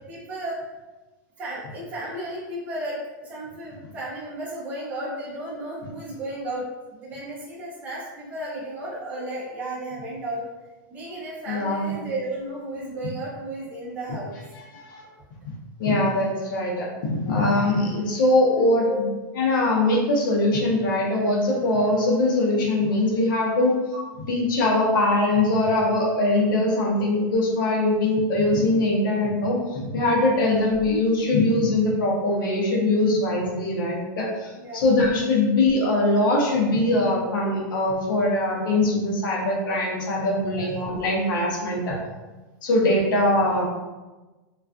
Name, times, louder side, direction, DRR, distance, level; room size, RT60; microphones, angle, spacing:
voice 1, 0.1-0.6 1.4-10.4 10.9-14.4 17.8-17.9 18.8-19.0 30.3-30.6 34.6-34.9 40.5-40.7, right 1 dB, 15° right, -7 dB, 0.6 m, -34 dB
voice 2, 11.5-12.0 14.5-15.0 15.4-15.5 15.8-19.1 19.4-23.7 24.3-42.0 42.6-43.6, left 2 dB, 75° left, -2 dB, 0.7 m, -22 dB
2.4 x 2.3 x 2.3 m, 1.2 s
supercardioid pair, 170°, 11 cm